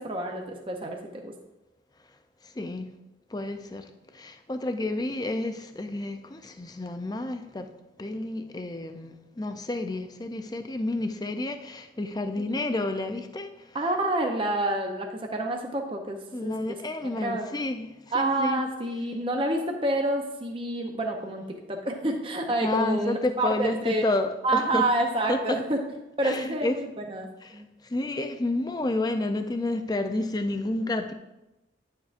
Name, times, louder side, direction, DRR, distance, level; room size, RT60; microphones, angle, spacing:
voice 1, 0.0-1.3 12.4-12.6 13.7-16.8 17.2-17.5 18.1-24.0 24.4-25.8 26.2-27.3 27.5-27.7, right 1 dB, 25° right, 2 dB, 0.7 m, -28 dB
voice 2, 2.6-2.9 3.3-3.8 4.2-7.7 8.0-13.5 16.3-17.9 18.1-18.6 22.6-24.8 25.3-25.6 26.2-26.8 27.4-27.5 27.9-31.1, left 2 dB, 20° left, 7 dB, 0.4 m, -30 dB
10.0 x 7.2 x 2.5 m, 0.95 s
head